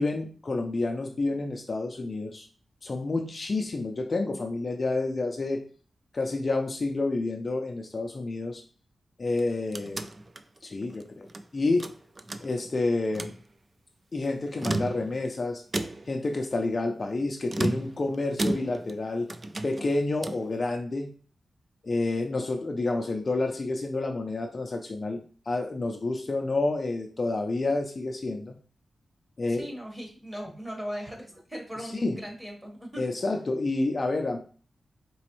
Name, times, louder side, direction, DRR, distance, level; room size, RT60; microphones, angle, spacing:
voice 1, 0.0-2.5 2.8-5.6 6.1-8.6 9.2-10.1 10.6-11.9 12.4-13.3 14.1-15.6 16.1-19.3 19.6-21.1 21.8-28.5 29.4-29.7 31.9-32.2 33.0-34.4, left 2 dB, 40° left, 3 dB, 0.4 m, -29 dB
sound 1, 9.3-11.4 11.8-12.8 13.1-13.4 14.4-15.3 15.7-16.2 17.5-19.0 19.3-20.5, right 2 dB, 30° right, 0.3 m, -33 dB
voice 2, 29.5-33.0, equal, 15° right, 0 dB, 1.2 m, -38 dB
4.1 x 3.0 x 3.0 m, 0.40 s
wide cardioid pair, 120°, 0 cm